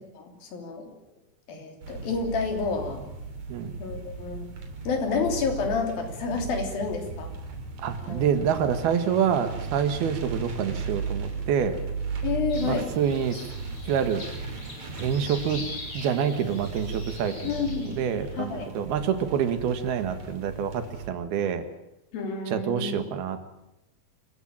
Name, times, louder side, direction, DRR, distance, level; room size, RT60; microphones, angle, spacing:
voice 1, 0.1-0.9 1.5-3.0 3.8-4.5 4.8-7.3 8.0-8.3 12.2-12.9 17.4-17.9 18.3-18.8 22.1-23.0, left 5 dB, 65° left, 4 dB, 4.9 m, -29 dB
sound 1, 1.8-21.1, right 4 dB, 45° right, 4.1 m, -36 dB
voice 2, 7.8-11.8 12.6-13.4 13.9-14.2 15.0-15.7 15.9-17.5 17.8-21.6 22.5-23.4, right 8 dB, 75° right, 9 dB, 3.5 m, -27 dB
sound 2, 12.5-18.2, left 2 dB, 35° left, 6.9 m, -43 dB
26.0 x 15.5 x 8.8 m, 0.89 s
omnidirectional pair, 4.6 m